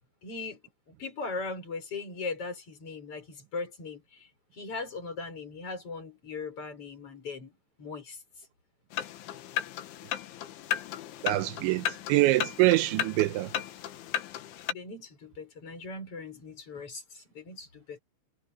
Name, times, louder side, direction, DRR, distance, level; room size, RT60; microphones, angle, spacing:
voice 1, 0.2-0.6 0.9-4.3 4.5-8.2 14.7-18.0, left 3 dB, 30° left, 6.8 m, -39 dB
sound 1, 8.9-14.7, left 11 dB, 80° left, 4.0 m, -35 dB
voice 2, 11.2-13.5, right 18 dB, 80° right, 3.0 m, -25 dB
omnidirectional pair, 5.4 m